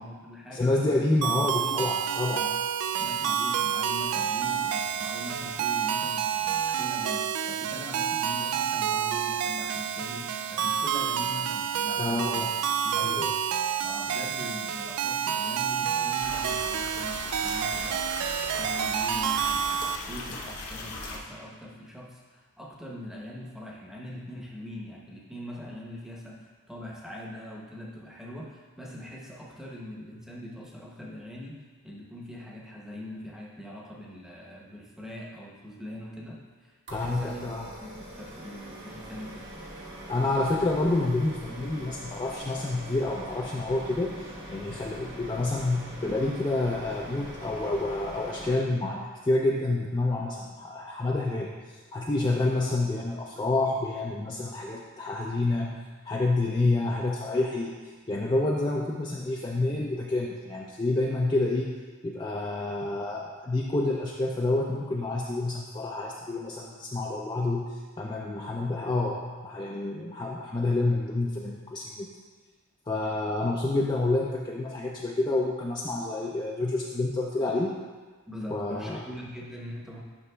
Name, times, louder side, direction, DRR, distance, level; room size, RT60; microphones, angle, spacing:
voice 1, 0.0-0.9 1.3-1.9 2.3-2.5 3.0-13.4 13.8-39.5 78.3-80.0, equal, ahead, -3 dB, 0.8 m, -42 dB
voice 2, 0.5-2.4 12.0-12.5 13.0-13.3 36.9-37.6 40.1-55.8 56.1-57.7 58.1-61.7 62.0-67.7 68.0-72.1 72.9-77.7 78.5-79.0, left 2 dB, 20° left, -2 dB, 0.4 m, -28 dB
sound 1, 1.2-20.0, right 8 dB, 90° right, 0.3 m, -29 dB
sound 2, 16.2-21.2, left 2 dB, 90° left, 0.9 m, -38 dB
sound 3, 36.9-48.6, equal, 55° right, 1.1 m, -42 dB
9.6 x 5.9 x 2.2 m, 1.4 s
head